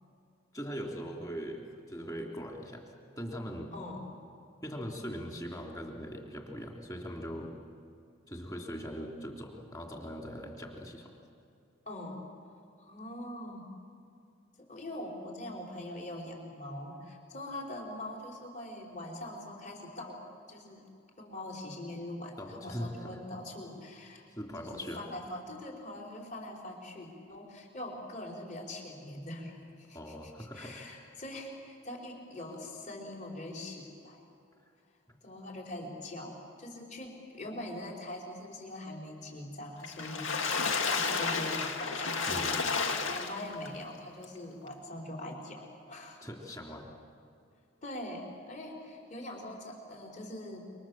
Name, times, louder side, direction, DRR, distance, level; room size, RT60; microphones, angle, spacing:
voice 1, 0.5-2.9 3.2-3.7 4.6-7.6 8.3-11.1 22.4-23.2 24.4-25.0 29.9-31.0 35.1-35.2 42.3-42.7 46.2-46.9, equal, 15° left, 1 dB, 3.0 m, -41 dB
voice 2, 3.7-4.1 11.8-12.3 12.8-13.7 14.7-20.2 20.5-20.9 21.2-24.2 24.5-34.2 35.2-46.2 47.8-50.7, left 1 dB, 35° left, -1 dB, 5.0 m, -43 dB
Water / Splash splatter, 39.8-43.7 44.2-44.3 44.7-44.8, left 4 dB, 70° left, 2.1 m, -31 dB
28.5 x 25.0 x 7.4 m, 2.5 s
head